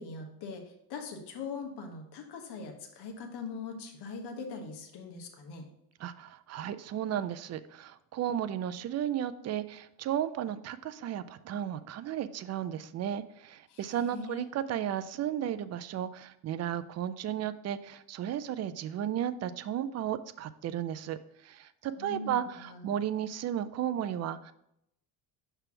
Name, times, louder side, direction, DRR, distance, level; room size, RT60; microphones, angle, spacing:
voice 1, 0.0-5.6 13.7-14.4 22.0-22.9, left 4 dB, 55° left, 3 dB, 1.3 m, -41 dB
voice 2, 6.0-24.5, right 10 dB, 35° right, 13 dB, 0.4 m, -34 dB
5.9 x 3.4 x 5.7 m, 0.78 s
supercardioid pair, 90°, 47 cm